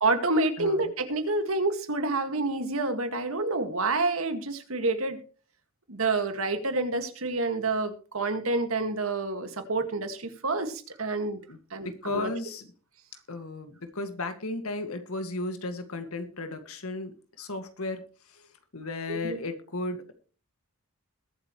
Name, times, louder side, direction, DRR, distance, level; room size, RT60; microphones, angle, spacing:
voice 1, 0.0-5.2 5.9-11.4 11.7-12.3 19.1-19.4, right 3 dB, 75° right, 7 dB, 2.0 m, -28 dB
voice 2, 11.8-12.7 13.3-18.0 18.3-18.5 18.7-20.1, left 2 dB, 85° left, 8 dB, 2.1 m, -35 dB
21.5 x 8.1 x 3.2 m, 0.37 s
head